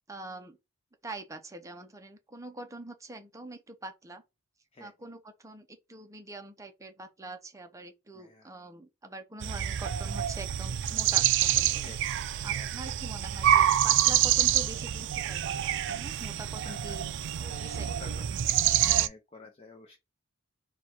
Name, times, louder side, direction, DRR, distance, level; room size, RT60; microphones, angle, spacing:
voice 1, 0.1-0.6 1.0-4.2 4.8-11.9 12.4-17.1 17.6-18.3, right 2 dB, 15° right, 0.6 m, -44 dB
voice 2, 8.1-8.5 11.8-12.7 16.6-17.0 17.4-18.3 18.8-20.0, left 3 dB, 30° left, 0.6 m, -50 dB
sound 1, 9.4-19.1, right 11 dB, 60° right, 0.4 m, -27 dB
4.4 x 2.3 x 4.3 m
head